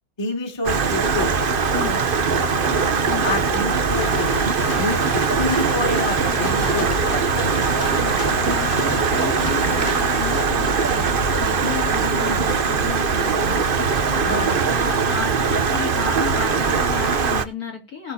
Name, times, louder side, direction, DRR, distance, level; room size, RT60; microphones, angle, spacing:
voice 1, 0.2-1.3 2.5-2.8 3.2-4.5 4.8-7.5 14.2-14.5, left 2 dB, 10° left, 2.2 m, -28 dB
Stream, 0.6-17.4, right 5 dB, 80° right, 0.4 m, -21 dB
sound 1, 4.0-10.5, left 8 dB, 65° left, 1.7 m, -34 dB
sound 2, 6.1-15.6, right 3 dB, 60° right, 2.2 m, -36 dB
voice 2, 7.9-18.1, left 6 dB, 45° left, 3.3 m, -33 dB
19.5 x 6.6 x 2.8 m
omnidirectional pair, 2.3 m